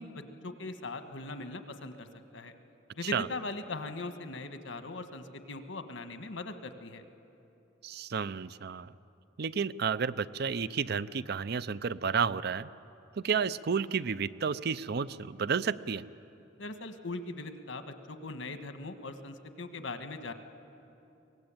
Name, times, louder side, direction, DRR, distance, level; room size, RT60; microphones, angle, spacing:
voice 1, 0.0-2.1 2.3-2.5 2.9-7.0 16.6-20.3, left 2 dB, 90° left, 8 dB, 1.5 m, -40 dB
voice 2, 7.8-8.9 9.4-12.7 13.1-16.0, right 6 dB, 60° right, 16 dB, 0.5 m, -31 dB
23.5 x 19.0 x 8.9 m, 2.9 s
head